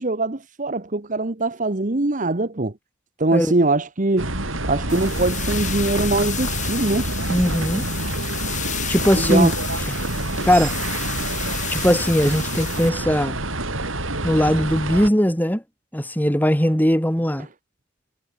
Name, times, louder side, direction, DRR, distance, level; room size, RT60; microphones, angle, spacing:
voice 1, 0.0-2.7 3.2-4.3 4.7-7.1 9.1-9.5, right 2 dB, 40° right, 1.2 m, -22 dB
sound 1, 4.2-15.1, right 2 dB, 85° right, 6.9 m, -27 dB
sound 2, 4.9-12.9, left 10 dB, 40° left, 3.6 m, -32 dB
voice 2, 7.3-7.8 8.9-9.5 10.5-10.7 11.7-13.4 14.2-15.6 15.9-17.5, equal, 10° left, 4.3 m, -19 dB
head